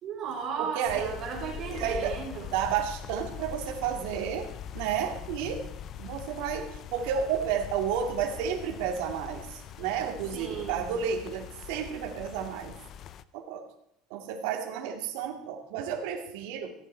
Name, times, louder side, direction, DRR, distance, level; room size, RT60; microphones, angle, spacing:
voice 1, 0.0-2.5 10.3-10.8, right 6 dB, 40° right, -6 dB, 3.3 m, -35 dB
voice 2, 0.6-1.1 1.6-2.2 2.5-4.5 4.7-5.6 6.0-12.8 13.3-13.6 14.1-16.7, right 8 dB, 75° right, 1 dB, 2.3 m, -31 dB
sound 1, 0.8-13.2, left 9 dB, 40° left, 0.5 m, -42 dB
15.5 x 10.5 x 4.6 m, 0.78 s
cardioid pair, 160°, 0 cm